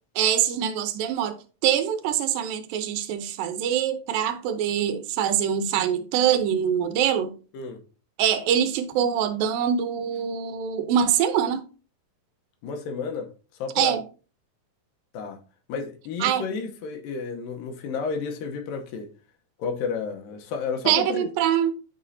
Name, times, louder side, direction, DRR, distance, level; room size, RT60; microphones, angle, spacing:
voice 1, 0.2-1.4 1.6-7.3 8.2-11.6 13.8-14.0 16.2-16.4 20.9-21.7, right 9 dB, 90° right, 2.5 m, -24 dB
voice 2, 12.6-13.3 13.6-13.9 15.1-15.4 15.7-19.1 19.6-21.3, left 5 dB, 85° left, 2.6 m, -31 dB
10.5 x 4.1 x 2.7 m
omnidirectional pair, 3.9 m